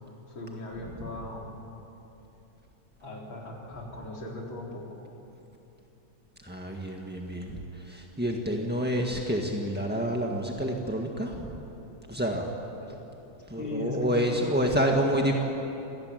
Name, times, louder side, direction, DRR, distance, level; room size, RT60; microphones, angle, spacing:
voice 1, 0.3-1.6 3.0-4.9 12.8-13.0 13.6-15.1, left 1 dB, 40° left, -2 dB, 4.6 m, -37 dB
voice 2, 6.4-11.6 12.1-12.5 13.5-15.3, equal, 5° right, 0 dB, 0.8 m, -28 dB
27.0 x 19.0 x 9.1 m, 3.0 s
omnidirectional pair, 3.3 m